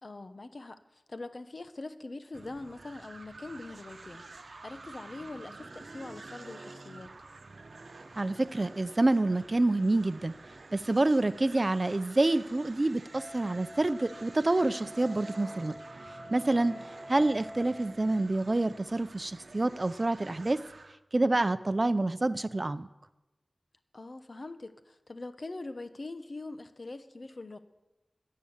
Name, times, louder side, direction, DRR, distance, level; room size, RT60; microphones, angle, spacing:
voice 1, 0.0-7.1 16.6-16.9 23.9-27.6, left 2 dB, 60° left, 10 dB, 1.1 m, -43 dB
sound 1, 2.3-21.0, right 3 dB, 75° right, 0.9 m, -49 dB
voice 2, 8.2-10.3 10.7-15.8 16.3-16.7 17.1-20.6 21.1-22.9, right 2 dB, 40° right, 14 dB, 0.6 m, -27 dB
Wind instrument woodwind instrument, 13.1-18.1, equal, 10° right, 5.9 m, -46 dB
17.0 x 8.6 x 7.2 m, 1.0 s
wide cardioid pair, 60°, 0 cm